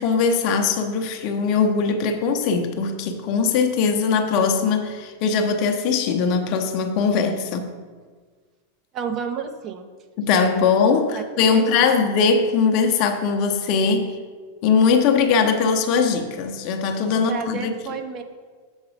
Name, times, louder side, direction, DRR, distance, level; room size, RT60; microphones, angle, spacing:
voice 1, 0.0-7.7 10.2-14.2 14.6-17.7, left 5 dB, 40° left, 6 dB, 0.7 m, -20 dB
voice 2, 8.9-9.9 11.1-12.0 17.1-18.2, right 6 dB, 35° right, 6 dB, 0.7 m, -31 dB
7.1 x 4.7 x 5.1 m, 1.5 s
figure-of-eight pair, 90°, 0 cm